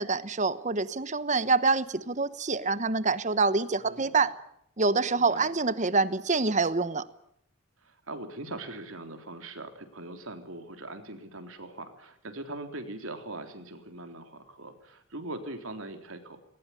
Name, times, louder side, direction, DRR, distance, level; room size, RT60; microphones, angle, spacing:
voice 1, 0.0-4.3 4.8-7.0, right 4 dB, 35° right, 14 dB, 1.1 m, -26 dB
voice 2, 3.8-4.3 5.2-5.5 7.8-16.4, right 2 dB, 65° right, 7 dB, 3.7 m, -41 dB
21.0 x 19.5 x 9.9 m, 0.72 s
head